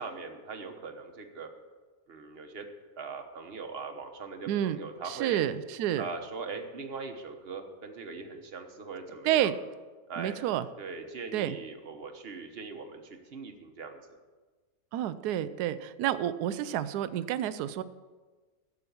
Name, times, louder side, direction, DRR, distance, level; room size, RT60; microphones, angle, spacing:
voice 1, 0.0-1.5 2.1-2.6 3.0-5.4 6.0-9.5 10.1-10.4 10.8-13.0 13.3-14.0, right 4 dB, 40° right, 6 dB, 1.2 m, -40 dB
voice 2, 4.5-4.8 5.0-6.0 9.2-9.5 10.2-10.7 11.3-11.6 14.9-17.8, right 11 dB, 80° right, 14 dB, 1.1 m, -29 dB
12.0 x 7.1 x 7.0 m, 1.3 s
omnidirectional pair, 1.7 m